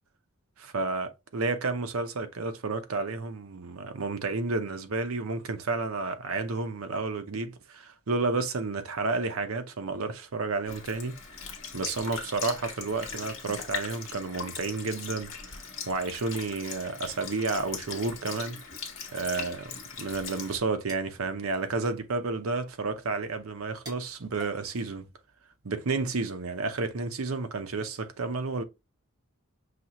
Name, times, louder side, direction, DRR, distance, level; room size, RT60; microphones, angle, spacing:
voice 1, 0.6-11.2 11.7-18.6 19.1-25.1 25.6-28.6, right 3 dB, 80° right, 0.7 m, -31 dB
Sink (filling or washing) / Liquid, 10.7-20.6, left 6 dB, 65° left, 1.2 m, -40 dB
sound 1, 20.4-25.7, right 1 dB, 20° right, 1.7 m, -55 dB
5.9 x 2.8 x 2.9 m
head